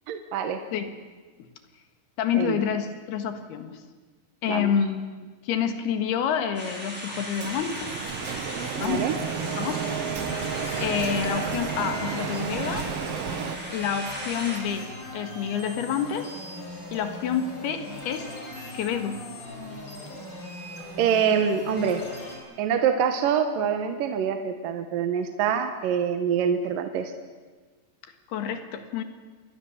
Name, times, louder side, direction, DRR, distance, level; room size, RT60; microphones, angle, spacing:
voice 1, 0.1-0.6 2.4-2.6 4.5-4.7 8.8-9.1 21.0-22.0 22.6-27.1, right 7 dB, 65° right, 7 dB, 2.5 m, -25 dB
voice 2, 2.2-3.8 4.4-7.9 8.8-9.1 9.6-10.0 10.8-12.9 13.7-16.3 16.9-18.3 18.7-19.2 28.3-29.0, left 8 dB, 75° left, 7 dB, 3.6 m, -28 dB
sound 1, 6.5-14.6, equal, ahead, 5.3 m, -37 dB
Printer, 7.4-13.6, right 8 dB, 85° right, 1.3 m, -32 dB
sound 2, 9.2-22.4, left 1 dB, 25° left, 5.3 m, -39 dB
27.0 x 20.5 x 7.2 m, 1.4 s
omnidirectional pair, 4.8 m